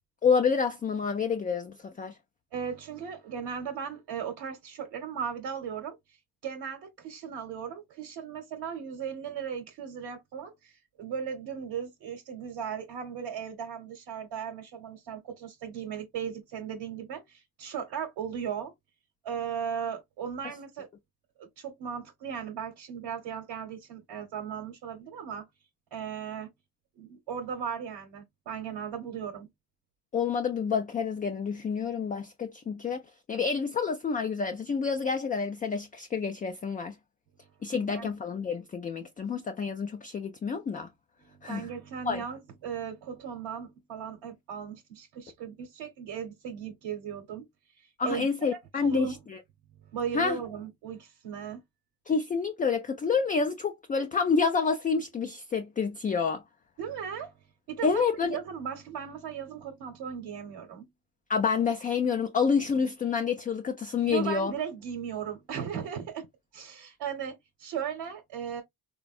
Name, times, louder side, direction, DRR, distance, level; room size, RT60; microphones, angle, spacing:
voice 1, 0.2-2.2 30.1-33.0 33.3-36.9 37.6-40.9 41.4-41.7 42.0-42.2 48.0-49.4 50.1-50.4 52.1-56.4 57.8-58.4 61.3-64.5, left 5 dB, 20° left, 0.3 m, -28 dB
voice 2, 2.5-6.2 6.4-18.7 19.2-20.9 21.4-25.4 25.9-26.5 27.0-29.5 37.7-38.1 41.2-47.4 47.8-48.3 48.8-49.2 49.9-51.6 56.8-57.3 57.7-60.9 64.0-66.3 66.5-68.6, right 7 dB, 75° right, 1.0 m, -37 dB
3.4 x 2.1 x 2.4 m
supercardioid pair, 70°, 41 cm